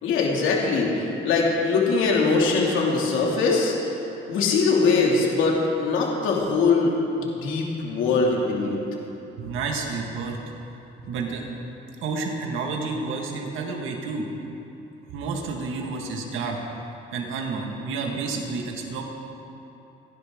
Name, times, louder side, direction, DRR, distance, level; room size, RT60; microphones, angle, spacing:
voice 1, 0.0-3.7 4.3-6.9 7.2-8.8, left 4 dB, 90° left, -2 dB, 2.6 m, -22 dB
voice 2, 9.4-10.4 11.0-11.5 12.0-14.3 15.1-16.6 17.1-19.0, right 4 dB, 85° right, 1 dB, 1.9 m, -30 dB
28.5 x 11.0 x 3.8 m, 2.9 s
cardioid pair, 90°, 20 cm